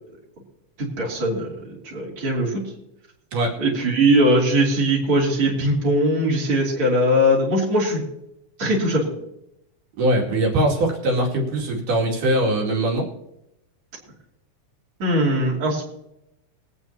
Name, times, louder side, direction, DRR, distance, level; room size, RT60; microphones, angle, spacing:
voice 1, 0.8-2.6 3.6-8.0 8.6-9.1 15.0-15.9, equal, 40° right, -5 dB, 3.6 m, -20 dB
voice 2, 10.0-13.1, right 1 dB, 65° right, -1 dB, 3.9 m, -21 dB
23.5 x 9.2 x 2.8 m, 0.84 s
omnidirectional pair, 3.9 m